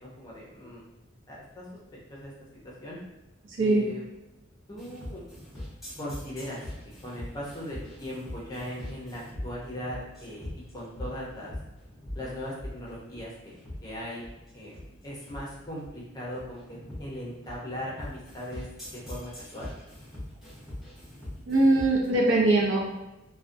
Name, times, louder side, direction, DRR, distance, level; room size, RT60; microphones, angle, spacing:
voice 1, 0.0-0.8 1.3-1.7 2.1-2.3 2.6-3.0 3.6-4.0 4.7-5.2 6.0-6.6 7.0-11.5 12.1-13.6 13.8-14.2 14.5-18.7 18.9-19.7, equal, 20° left, -5 dB, 0.6 m, -39 dB
sound 1, 4.8-22.1, left 1 dB, ahead, 0.9 m, -42 dB
voice 2, 21.5-22.8, right 2 dB, 70° right, -2 dB, 0.6 m, -21 dB
2.4 x 2.1 x 2.5 m, 0.94 s
head